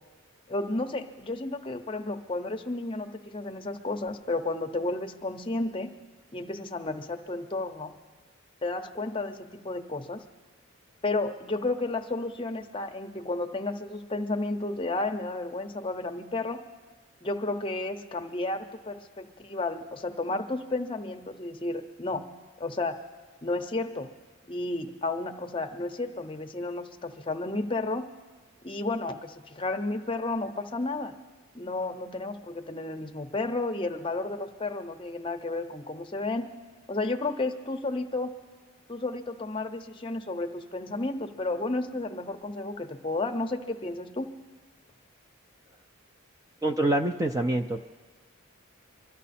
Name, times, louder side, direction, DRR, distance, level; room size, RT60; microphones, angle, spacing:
voice 1, 0.5-5.9 6.3-7.9 8.6-10.2 11.0-16.6 17.2-22.3 22.6-23.0 23.4-24.1 24.5-28.1 28.6-31.1 31.5-36.5 36.9-38.3 38.9-44.3, left 2 dB, 25° left, 6 dB, 0.7 m, -32 dB
voice 2, 46.6-47.9, right 1 dB, 15° right, 6 dB, 0.4 m, -26 dB
24.5 x 12.0 x 4.2 m, 1.4 s
head